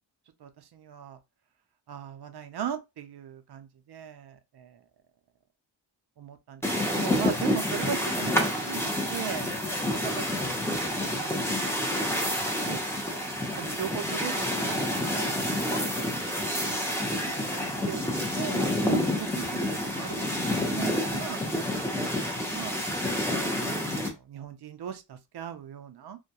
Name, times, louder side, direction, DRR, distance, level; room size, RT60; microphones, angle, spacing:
voice 1, 0.4-1.2 1.9-4.8 6.2-10.2 10.9-11.8 12.1-12.8 13.1-13.2 13.5-16.1 16.6-17.6 17.9-18.0 18.3-21.6 22.5-22.8 23.5-26.2, right 9 dB, 60° right, 0.5 m, -39 dB
sound 1, 6.6-24.1, left 1 dB, 5° left, 0.7 m, -29 dB
2.3 x 2.2 x 2.8 m
wide cardioid pair, 105°, 45 cm